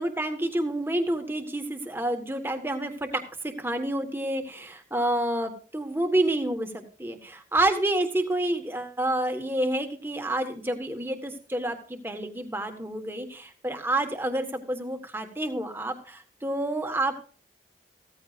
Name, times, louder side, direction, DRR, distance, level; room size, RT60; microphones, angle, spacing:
voice 1, 0.0-17.2, right 1 dB, 10° right, 5 dB, 1.6 m, -29 dB
15.5 x 14.5 x 2.6 m, 0.40 s
head